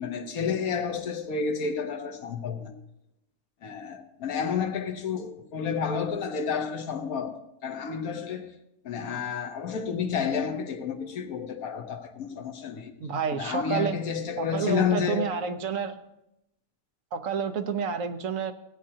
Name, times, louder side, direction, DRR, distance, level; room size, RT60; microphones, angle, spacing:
voice 1, 0.0-2.7 3.6-8.5 8.8-12.9 13.3-15.3, left 6 dB, 90° left, 1.5 m, -30 dB
voice 2, 13.0-13.9 14.4-15.9 17.1-18.5, right 6 dB, 70° right, 1.1 m, -29 dB
16.0 x 8.7 x 2.8 m
omnidirectional pair, 1.5 m